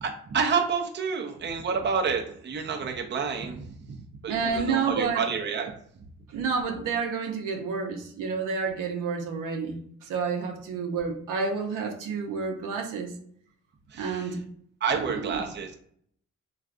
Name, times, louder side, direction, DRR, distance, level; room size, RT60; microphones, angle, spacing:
voice 1, 0.0-4.0 4.2-5.7 13.9-14.3 14.8-15.8, right 5 dB, 35° right, 2 dB, 0.5 m, -29 dB
voice 2, 4.3-5.2 6.3-13.1 14.0-14.4 14.9-15.4, right 5 dB, 85° right, 2 dB, 0.7 m, -30 dB
3.3 x 2.4 x 2.5 m, 0.63 s
cardioid pair, 70°, 31 cm